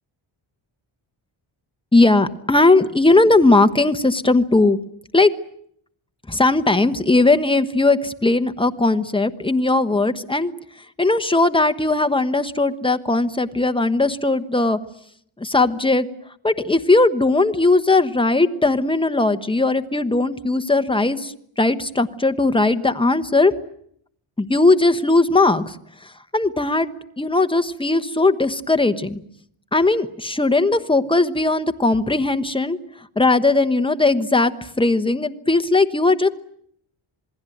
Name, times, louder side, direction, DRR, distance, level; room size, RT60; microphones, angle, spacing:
voice 1, 1.9-4.8 5.1-5.3 6.3-10.5 11.0-14.8 15.4-16.1 16.4-23.5 24.4-25.8 26.3-26.9 27.2-29.2 29.7-32.8 33.2-34.5 34.8-36.3, left 2 dB, 10° left, 10 dB, 1.1 m, -18 dB
27.5 x 20.0 x 9.2 m, 0.68 s
wide cardioid pair, 160°, 50 cm